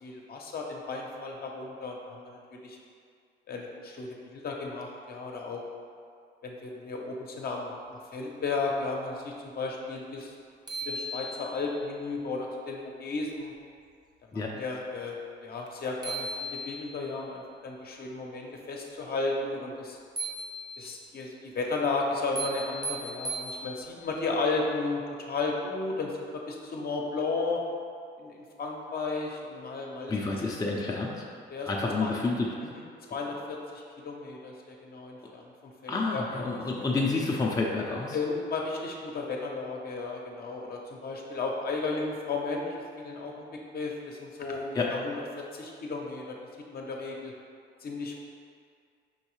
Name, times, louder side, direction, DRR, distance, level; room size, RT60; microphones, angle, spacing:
voice 1, 0.0-2.8 3.5-5.6 6.4-10.3 10.8-13.5 14.3-15.2 15.4-20.0 20.8-27.6 28.2-30.1 31.5-31.7 32.0-32.1 32.7-32.8 33.1-37.1 38.1-43.5 43.7-46.4 46.7-47.3 47.8-48.1, left 3 dB, 50° left, 0 dB, 0.7 m, -34 dB
sound 1, 10.2-10.3 10.7-11.8 15.7-15.8 16.0-17.1 20.2-21.1 22.3-24.1, right 1 dB, 20° right, 0.6 m, -37 dB
voice 2, 30.1-31.2 31.7-32.5 35.9-38.2 44.8-44.9, left 3 dB, 20° left, -2 dB, 0.5 m, -29 dB
5.4 x 3.1 x 3.1 m, 2.2 s
cardioid pair, 90°, 20 cm